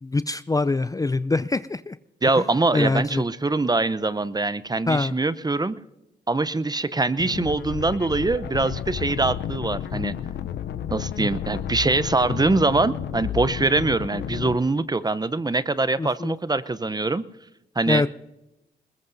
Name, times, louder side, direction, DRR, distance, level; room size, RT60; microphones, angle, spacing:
voice 1, 0.0-2.0 2.4-2.5 2.7-3.2 4.9-5.1 16.0-16.4 17.9-18.1, left 3 dB, 20° left, 15 dB, 0.4 m, -24 dB
voice 2, 2.2-5.8 6.3-10.1 10.9-17.2 17.8-18.0, right 3 dB, 20° right, 16 dB, 0.7 m, -23 dB
sound 1, 7.2-14.5, left 9 dB, 80° left, 0.6 m, -31 dB
21.0 x 20.0 x 2.7 m, 0.93 s
supercardioid pair, 50°, 18 cm